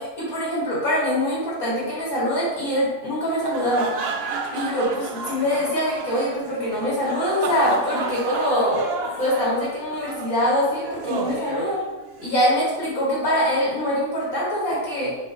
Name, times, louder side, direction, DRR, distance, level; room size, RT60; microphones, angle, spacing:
voice 1, 0.0-3.9 4.5-8.8 9.2-11.8 12.2-15.2, equal, 70° left, -7 dB, 2.1 m, -24 dB
sound 1, 3.3-12.3, right 4 dB, 65° right, 0.6 m, -31 dB
4.0 x 3.9 x 3.4 m, 1.1 s
omnidirectional pair, 1.5 m